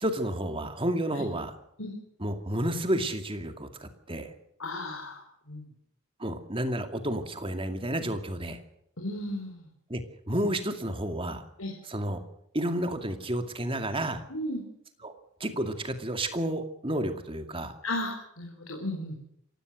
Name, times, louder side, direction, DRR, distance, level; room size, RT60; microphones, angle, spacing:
voice 1, 0.0-1.6 2.2-4.3 6.2-8.6 9.9-11.4 11.9-12.2 12.5-14.2 15.0-15.1 15.4-17.7, right 1 dB, 25° right, 8 dB, 2.3 m, -31 dB
voice 2, 4.6-5.6 9.0-9.7 11.6-11.7 14.3-14.6 17.8-19.2, left 1 dB, 80° left, 1 dB, 4.3 m, -35 dB
27.5 x 16.5 x 6.4 m, 0.75 s
head